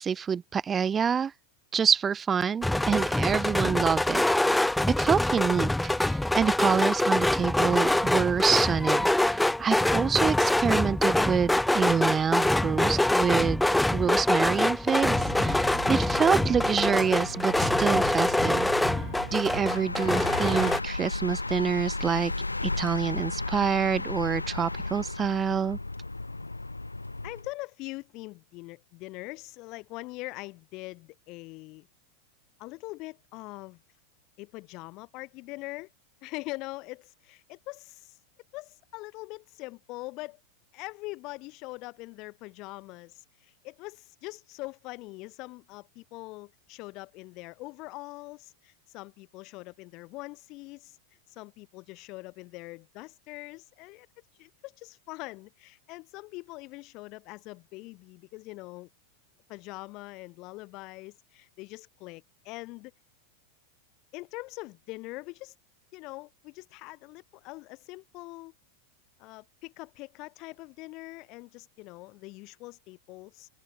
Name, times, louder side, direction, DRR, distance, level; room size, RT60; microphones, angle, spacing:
voice 1, 0.0-1.3 1.7-4.2 4.9-13.7 13.9-18.7 19.3-22.3 22.6-25.8, right 7 dB, 20° right, 0.7 m, -27 dB
sound 1, 2.6-20.8, left 1 dB, 5° left, 0.3 m, -25 dB
sound 2, 14.8-27.5, left 2 dB, 85° left, 0.8 m, -35 dB
voice 2, 27.2-31.9 32.6-33.8 34.4-35.9 36.2-38.2 38.5-40.4 40.7-51.0 51.3-54.1 54.4-58.9 59.5-62.9 64.1-65.5 65.9-68.5 69.2-73.5, left 22 dB, 40° left, 3.5 m, -42 dB
figure-of-eight pair, 90°, 0 cm